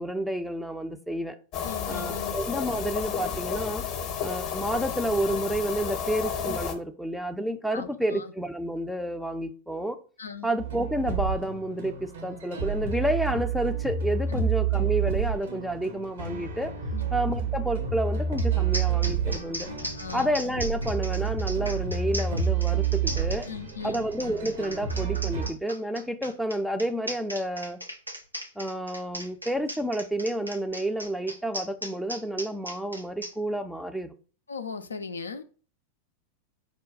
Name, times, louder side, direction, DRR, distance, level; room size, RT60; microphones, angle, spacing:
voice 1, 0.0-1.4 1.9-3.8 4.2-10.0 10.4-16.7 17.1-19.7 20.1-23.5 23.8-27.8 28.6-34.1, right 1 dB, ahead, 0.4 m, -30 dB
sound 1, 1.5-6.7, left 7 dB, 40° left, 0.7 m, -32 dB
voice 2, 1.6-2.4 7.7-8.3 10.2-10.5 14.3-14.4 16.9-17.1 20.0-20.3 23.5-24.0 34.5-35.4, left 5 dB, 75° left, 0.3 m, -38 dB
sound 2, 10.6-25.5, right 7 dB, 65° right, 0.8 m, -29 dB
sound 3, 18.4-18.5 18.7-33.3, equal, 90° right, 0.5 m, -37 dB
4.9 x 2.2 x 3.6 m
figure-of-eight pair, 90°, 0 cm